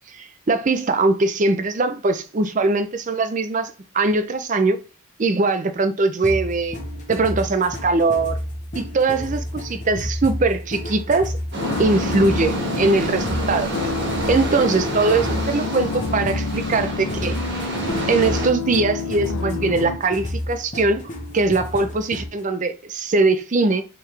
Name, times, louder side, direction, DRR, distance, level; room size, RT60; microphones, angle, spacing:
voice 1, 0.1-4.8 5.2-6.8 7.1-8.4 8.7-11.3 11.8-13.7 14.3-17.4 18.1-21.0 21.3-23.8, right 3 dB, 35° right, 0.5 m, -21 dB
sound 1, 6.2-22.4, left 1 dB, 35° left, 1.0 m, -31 dB
sound 2, 11.5-18.5, right 2 dB, 55° right, 1.4 m, -29 dB
sound 3, 11.6-20.0, left 5 dB, 75° left, 0.5 m, -29 dB
4.5 x 3.6 x 3.2 m
head